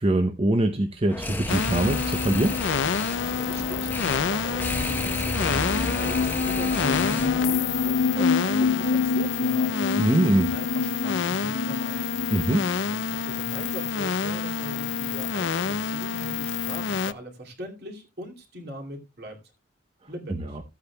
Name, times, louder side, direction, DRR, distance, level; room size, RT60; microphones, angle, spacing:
voice 1, 0.0-2.6 10.0-10.5 12.3-12.7 20.3-20.5, right 1 dB, 30° right, 0.7 m, -23 dB
sound 1, 1.1-7.6, left 1 dB, 10° left, 0.9 m, -32 dB
sound 2, 1.5-17.1, left 5 dB, 65° left, 0.5 m, -28 dB
voice 2, 3.1-12.2 12.5-12.6 12.9-19.4 20.1-20.6, equal, 55° right, 2.5 m, -40 dB
sound 3, 5.4-12.9, left 4 dB, 50° left, 1.1 m, -27 dB
15.0 x 8.4 x 2.3 m
head